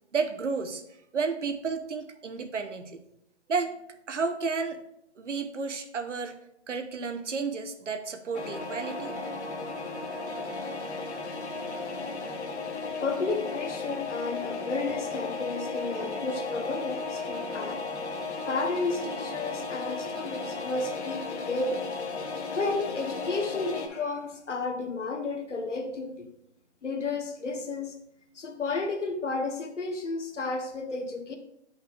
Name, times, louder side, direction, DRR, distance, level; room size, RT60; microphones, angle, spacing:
voice 1, 0.1-0.8 1.1-3.0 3.5-4.8 5.2-6.4 6.7-9.2, right 5 dB, 80° right, 7 dB, 0.9 m, -32 dB
sound 1, 8.3-23.9, left 3 dB, 65° left, 1.2 m, -35 dB
voice 2, 13.0-17.8 18.5-21.8 22.6-26.3 26.8-28.0 28.3-31.4, left 3 dB, 85° left, 6 dB, 1.1 m, -32 dB
7.9 x 5.6 x 2.4 m, 0.76 s
figure-of-eight pair, 145°, 35 cm